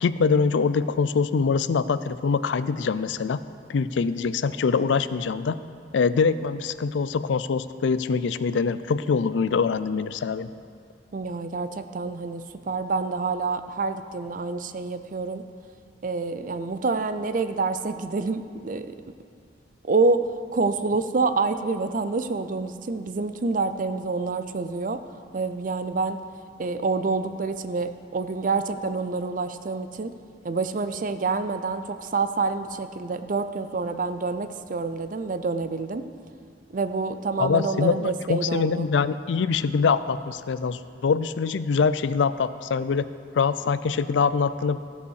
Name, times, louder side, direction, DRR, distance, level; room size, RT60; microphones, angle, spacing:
voice 1, 0.0-3.4 3.7-5.6 5.9-10.5 37.4-43.0 43.4-44.8, left 5 dB, 75° left, 14 dB, 0.4 m, -24 dB
voice 2, 11.1-15.4 16.0-18.9 19.8-20.2 20.5-25.0 25.3-26.2 26.6-30.1 30.4-36.0 36.7-38.9, right 4 dB, 45° right, 10 dB, 0.5 m, -27 dB
15.0 x 5.4 x 6.4 m, 2.3 s
head